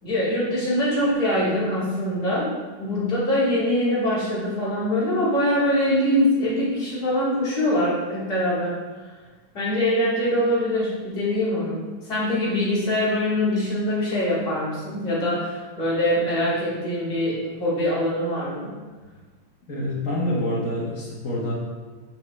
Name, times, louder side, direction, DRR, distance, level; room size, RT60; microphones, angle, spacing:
voice 1, 0.0-2.5 2.8-8.8 9.0-9.1 9.5-18.7, left 1 dB, 35° left, -9 dB, 2.8 m, -23 dB
voice 2, 19.7-21.5, left 1 dB, 60° left, -5 dB, 0.8 m, -26 dB
10.5 x 4.6 x 3.2 m, 1.4 s
omnidirectional pair, 3.4 m